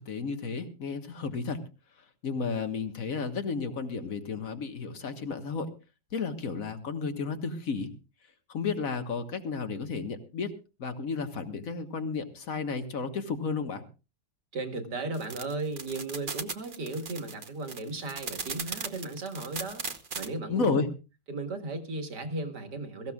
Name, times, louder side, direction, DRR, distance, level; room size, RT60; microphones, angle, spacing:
voice 1, 0.0-1.6 2.2-5.7 6.1-7.9 8.5-10.5 10.8-13.8 20.5-20.9, left 4 dB, 50° left, 7 dB, 1.8 m, -32 dB
voice 2, 14.5-19.8 20.2-20.8 21.3-23.1, right 2 dB, 65° right, 5 dB, 2.4 m, -35 dB
sound 1, 15.1-20.3, right 4 dB, 35° right, 1.0 m, -37 dB
22.5 x 14.5 x 2.4 m, 0.31 s
omnidirectional pair, 2.0 m